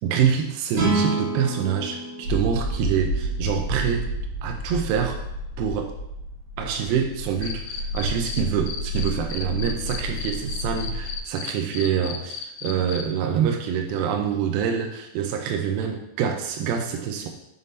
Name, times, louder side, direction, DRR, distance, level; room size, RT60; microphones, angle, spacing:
voice 1, 0.0-4.1 4.4-5.2 5.6-5.9 6.6-17.3, right 8 dB, 80° right, 3 dB, 2.4 m, -26 dB
sound 1, 0.7-4.0, right 3 dB, 45° right, 2.5 m, -29 dB
sound 2, 2.2-11.2, equal, 65° right, 2.5 m, -31 dB
Cricket, 7.4-8.4 8.7-13.0, left 8 dB, 80° left, 2.4 m, -34 dB
6.7 x 3.6 x 4.0 m, 0.83 s
omnidirectional pair, 4.4 m